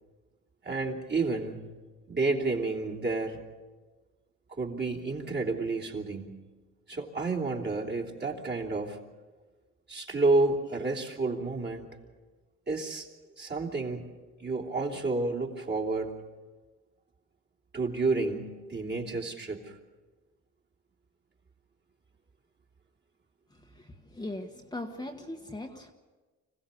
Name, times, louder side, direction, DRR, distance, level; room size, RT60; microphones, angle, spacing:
voice 1, 0.6-1.6 2.1-3.4 4.5-6.3 6.9-9.0 9.9-11.9 12.7-13.1 13.4-14.1 14.4-16.2 17.7-19.8, right 3 dB, 35° right, 0 dB, 3.1 m, -30 dB
voice 2, 23.8-25.9, left 1 dB, 15° left, 2 dB, 1.4 m, -39 dB
25.5 x 16.0 x 7.0 m, 1.3 s
cardioid pair, 90°, 30 cm